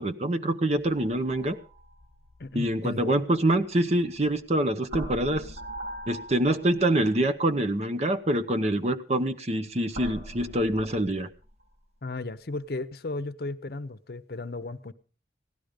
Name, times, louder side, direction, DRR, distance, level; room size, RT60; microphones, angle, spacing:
voice 1, 0.0-1.6 2.5-5.5 6.1-11.3, right 1 dB, 35° right, 0.9 m, -25 dB
sound 1, 1.0-4.4 4.9-7.3 8.2-8.4 9.9-11.7, equal, 80° right, 5.4 m, -42 dB
voice 2, 2.4-3.2 12.0-14.9, left 2 dB, 55° left, 0.7 m, -35 dB
16.5 x 12.0 x 5.1 m
head